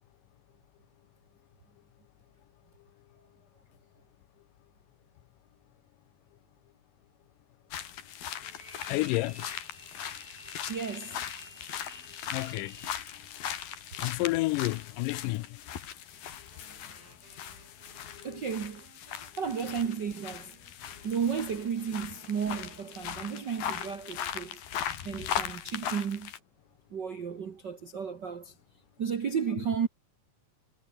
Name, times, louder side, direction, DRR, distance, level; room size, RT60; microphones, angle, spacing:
sound 1, 7.7-26.4, left 9 dB, 70° left, 4.0 m, -39 dB
sound 2, 8.5-13.2, right 1 dB, 10° right, 5.8 m, -52 dB
voice 1, 8.9-9.5 12.3-12.8 14.0-15.5 18.2-18.5, left 21 dB, 85° left, 1.9 m, -30 dB
voice 2, 10.7-11.2 18.2-18.8 19.4-20.6 21.0-24.6 25.0-26.3 26.9-28.5 29.0-29.9, right 7 dB, 90° right, 0.9 m, -33 dB
Wind instrument woodwind instrument, 16.5-23.2, right 5 dB, 70° right, 7.6 m, -61 dB
omnidirectional pair, 4.4 m